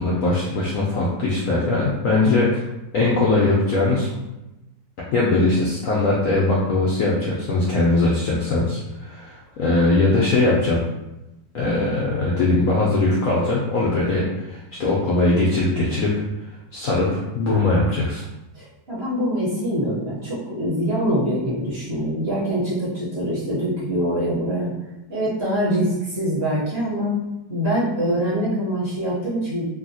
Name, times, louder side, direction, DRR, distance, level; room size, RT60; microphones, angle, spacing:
voice 1, 0.0-2.6 2.9-4.1 5.1-10.8 11.5-16.2 16.7-18.2, left 2 dB, 85° left, -5 dB, 0.7 m, -20 dB
voice 2, 18.5-24.7 25.1-27.2 27.5-29.7, equal, 45° right, -9 dB, 0.9 m, -24 dB
2.8 x 2.8 x 2.7 m, 0.96 s
omnidirectional pair, 2.0 m